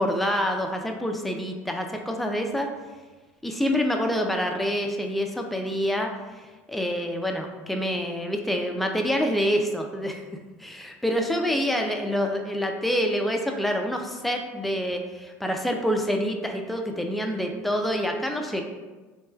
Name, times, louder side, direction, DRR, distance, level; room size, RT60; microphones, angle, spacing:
voice 1, 0.0-2.7 3.4-6.1 6.7-10.2 10.6-18.6, equal, ahead, 3 dB, 0.3 m, -26 dB
3.0 x 2.2 x 2.2 m, 1.2 s
hypercardioid pair, 90°, 7 cm